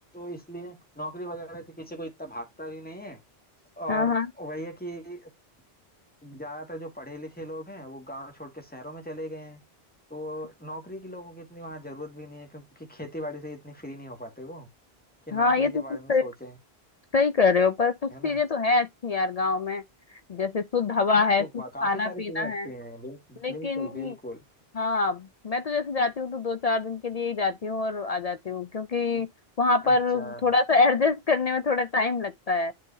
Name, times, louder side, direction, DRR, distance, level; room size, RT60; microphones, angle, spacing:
voice 1, 0.1-3.2 3.8-5.3 6.2-9.6 10.1-14.7 15.3-16.6 18.1-18.4 21.2-24.4 29.1-29.3 29.8-30.4, equal, 10° left, 1.9 m, -39 dB
voice 2, 3.9-4.3 15.3-16.3 17.1-19.8 20.1-22.7 23.4-24.1 24.8-29.3 29.6-32.7, left 4 dB, 50° left, 0.5 m, -25 dB
10.5 x 3.8 x 2.7 m
omnidirectional pair, 1.0 m